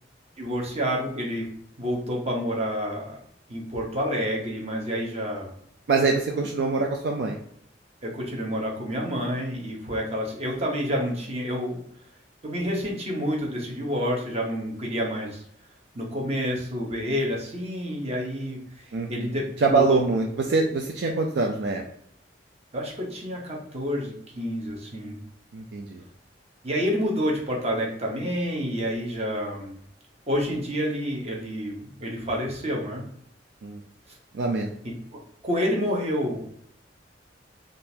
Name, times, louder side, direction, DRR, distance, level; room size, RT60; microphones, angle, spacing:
voice 1, 0.4-1.5 1.8-3.2 3.5-5.5 8.0-11.8 12.4-15.4 15.9-20.0 22.7-25.2 26.6-29.7 30.3-33.0 34.8-34.9 35.4-36.4, equal, 35° right, -1 dB, 0.9 m, -29 dB
voice 2, 5.9-7.4 18.9-21.8 25.5-26.0 33.6-33.8 34.3-34.7, right 3 dB, 70° right, 1 dB, 0.4 m, -24 dB
3.6 x 2.5 x 2.8 m, 0.69 s
head